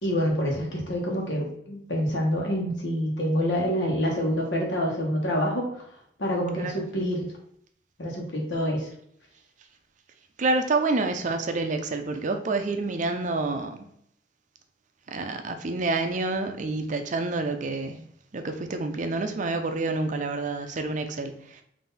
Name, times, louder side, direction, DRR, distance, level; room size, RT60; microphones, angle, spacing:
voice 1, 0.0-5.8 6.2-7.3 8.0-8.9, equal, 85° left, -1 dB, 1.1 m, -27 dB
voice 2, 10.4-13.9 15.1-18.0 18.3-21.6, right 3 dB, 45° right, 6 dB, 0.5 m, -28 dB
3.9 x 2.7 x 4.0 m, 0.70 s
head